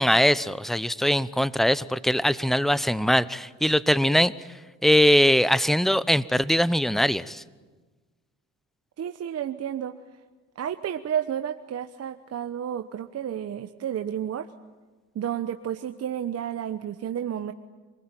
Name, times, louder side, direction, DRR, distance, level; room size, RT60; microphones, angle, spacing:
voice 1, 0.0-4.3 4.8-7.4, equal, ahead, 17 dB, 0.9 m, -21 dB
voice 2, 9.0-9.9 10.6-14.5 15.1-17.5, right 9 dB, 50° right, 8 dB, 1.1 m, -31 dB
26.5 x 20.5 x 9.1 m, 1.3 s
supercardioid pair, 75°, 33 cm